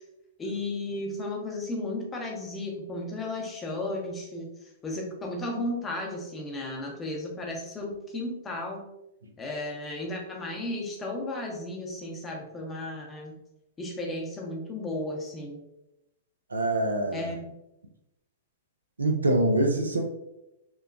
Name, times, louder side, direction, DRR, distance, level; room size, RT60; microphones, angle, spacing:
voice 1, 0.4-4.5 4.8-8.8 9.4-13.3 13.8-15.6 17.1-17.6, left 2 dB, 20° left, 0 dB, 0.7 m, -34 dB
voice 2, 16.5-17.2 19.0-20.0, right 1 dB, 90° right, 4 dB, 0.4 m, -24 dB
3.0 x 2.1 x 2.5 m, 0.88 s
hypercardioid pair, 110°, 0 cm